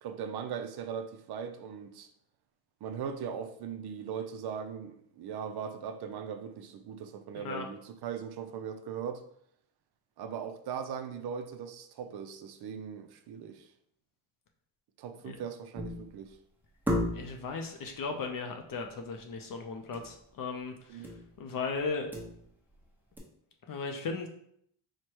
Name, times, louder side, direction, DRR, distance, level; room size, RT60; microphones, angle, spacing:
voice 1, 0.0-2.1 2.8-9.2 10.2-13.7 15.0-16.4 20.9-21.1, right 7 dB, 55° right, 0.5 m, -39 dB
voice 2, 7.4-7.7 15.2-15.4 17.1-22.1 23.7-24.3, left 4 dB, 45° left, 0.5 m, -37 dB
sound 1, 15.7-16.2 16.9-17.5 19.9-20.2 20.4-20.5 21.0-21.4 21.8-22.7 23.2-23.3, left 1 dB, 5° right, 0.8 m, -34 dB
4.7 x 2.2 x 4.4 m
cardioid pair, 150°, 48 cm